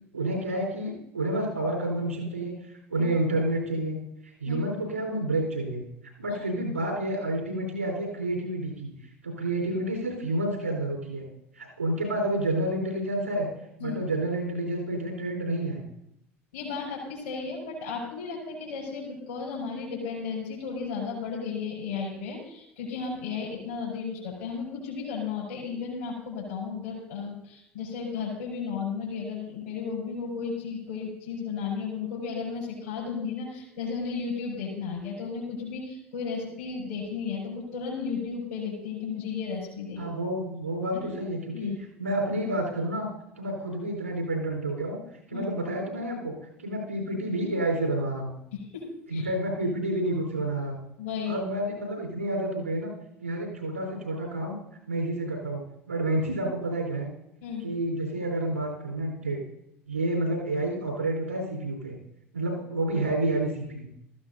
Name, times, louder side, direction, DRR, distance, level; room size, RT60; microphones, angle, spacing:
voice 1, 0.1-2.6 2.9-4.0 4.4-5.8 6.2-8.9 9.2-11.3 11.6-13.5 13.8-15.8 40.0-41.7 42.0-43.1 43.4-45.0 45.3-46.3 46.6-48.3 49.1-50.8 51.3-52.9 53.2-54.6 54.9-55.6 55.9-57.1 57.6-59.4 59.9-62.0 62.3-63.9, right 1 dB, 85° right, 0 dB, 4.0 m, -29 dB
voice 2, 16.5-40.0 40.9-41.1 41.5-41.7 45.3-45.5 48.5-49.3 51.0-51.4 57.4-57.7, left 5 dB, 75° left, -5 dB, 5.0 m, -34 dB
19.5 x 14.5 x 2.7 m, 0.78 s
figure-of-eight pair, 60°, 7 cm